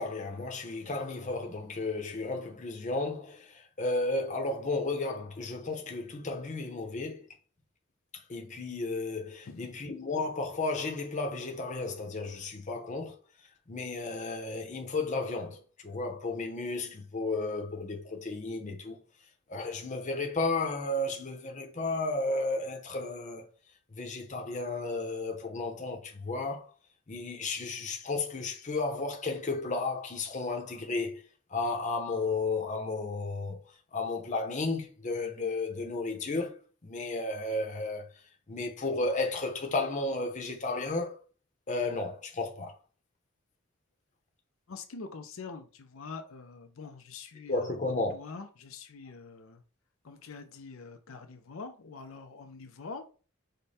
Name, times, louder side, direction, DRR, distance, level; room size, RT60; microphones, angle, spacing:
voice 1, 0.0-7.2 8.3-13.2 13.7-19.0 19.5-23.5 23.9-26.6 27.1-31.2 31.5-33.6 33.9-36.5 36.8-38.1 38.5-41.2 41.7-42.7 47.5-48.2, left 3 dB, 35° left, 0.8 m, -33 dB
voice 2, 44.7-49.6 50.0-53.0, left 4 dB, 80° left, 0.6 m, -45 dB
5.1 x 2.2 x 4.1 m
head